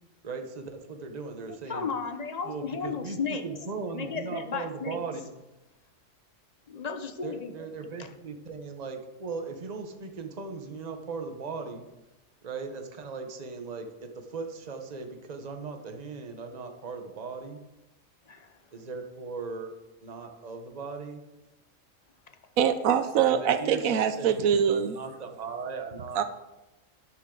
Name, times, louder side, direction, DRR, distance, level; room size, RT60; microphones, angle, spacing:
voice 1, 0.2-1.9 2.4-3.2 3.4-5.4 7.2-11.8 12.4-17.6 18.7-19.7 20.0-21.2 23.1-26.2, right 4 dB, 35° right, 5 dB, 1.1 m, -38 dB
voice 2, 1.7-3.5 3.9-5.0 6.7-7.7 8.0-8.1 18.3-18.5, left 5 dB, 35° left, 8 dB, 0.9 m, -34 dB
voice 3, 22.6-24.9 26.2-26.3, right 8 dB, 90° right, 11 dB, 1.1 m, -24 dB
12.0 x 10.5 x 3.9 m, 0.99 s
omnidirectional pair, 1.4 m